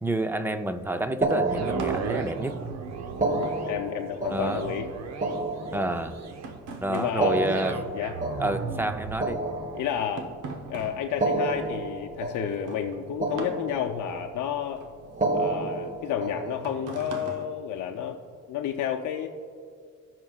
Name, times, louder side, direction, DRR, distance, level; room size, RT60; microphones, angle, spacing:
voice 1, 0.0-2.6 4.3-4.6 5.7-6.1 6.8-7.8 8.4-9.4, right 1 dB, 5° right, 9 dB, 0.5 m, -29 dB
sound 1, 0.8-8.5 8.7-18.4, right 4 dB, 90° right, 1.0 m, -43 dB
sound 2, 1.2-2.5 3.1-6.4 7.1-10.4 11.1-12.9 13.2-14.3 15.1-16.9, right 2 dB, 25° right, 1.2 m, -30 dB
sound 3, 1.4-15.6 16.1-16.2, right 6 dB, 60° right, 0.8 m, -38 dB
voice 2, 3.2-4.9 5.7-6.0 6.9-7.4 7.9-8.2 9.7-10.3 10.7-14.8 15.3-18.2 18.5-19.3, left 9 dB, 80° left, 3 dB, 0.6 m, -31 dB
17.0 x 5.9 x 2.4 m, 2.2 s
cardioid pair, 90°, 30 cm